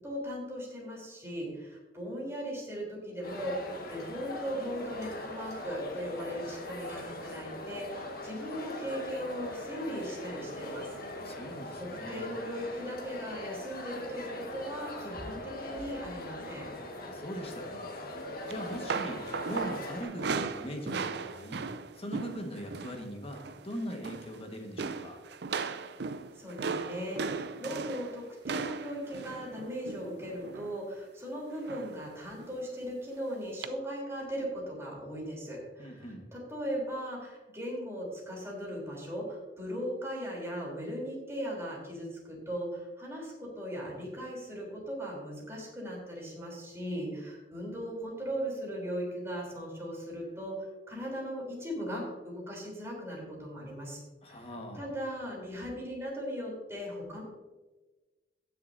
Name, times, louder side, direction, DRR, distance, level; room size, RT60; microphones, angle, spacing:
voice 1, 0.0-10.9 11.8-16.7 26.4-54.0 54.3-54.5 54.7-57.2, equal, 15° right, -3 dB, 3.5 m, -38 dB
sound 1, 3.2-20.0, left 1 dB, 60° left, 1.6 m, -41 dB
voice 2, 11.2-12.3 17.0-18.0 18.4-21.7 21.9-25.2 35.8-36.2 54.2-54.9, equal, 35° left, 3 dB, 1.5 m, -41 dB
sound 2, 18.5-23.0 23.3-23.6 23.9-24.4 24.8-30.8 31.7-32.0 32.4-32.6 33.6-33.7, right 4 dB, 70° right, 0.5 m, -37 dB
17.5 x 6.8 x 2.7 m, 1.2 s
head